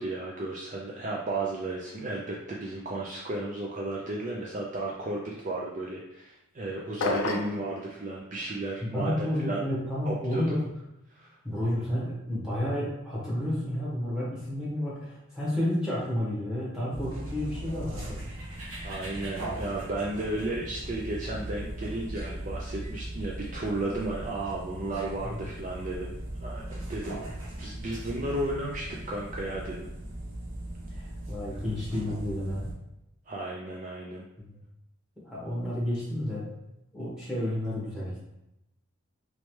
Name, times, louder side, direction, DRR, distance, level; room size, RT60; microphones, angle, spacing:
voice 1, 0.0-9.6 10.1-10.6 11.1-11.3 18.8-26.1 26.4-27.3 27.6-29.9 33.3-34.3, right 2 dB, 35° right, -3 dB, 0.4 m, -34 dB
sound 1, 7.0-7.6, left 3 dB, 65° left, 0.3 m, -29 dB
voice 2, 8.9-10.6 11.4-18.2 25.2-25.4 30.9-32.7 34.4-34.6 35.2-36.5 36.9-38.2, left 1 dB, 5° right, -8 dB, 1.2 m, -31 dB
sound 2, 16.9-32.7, right 1 dB, 85° right, 1.1 m, -39 dB
3.1 x 3.1 x 3.1 m, 0.88 s
head